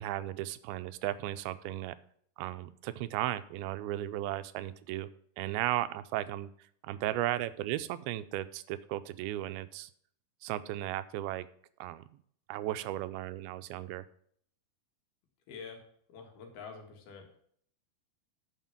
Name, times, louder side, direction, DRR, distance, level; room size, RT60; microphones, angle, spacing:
voice 1, 0.0-2.0 2.4-5.1 5.4-6.5 6.8-9.9 10.4-11.5 11.8-12.0 12.5-14.1, right 14 dB, 90° right, 13 dB, 2.5 m, -35 dB
voice 2, 15.5-15.8 16.1-17.4, left 5 dB, 85° left, 3 dB, 3.7 m, -47 dB
9.3 x 6.8 x 5.9 m, 0.62 s
omnidirectional pair, 4.3 m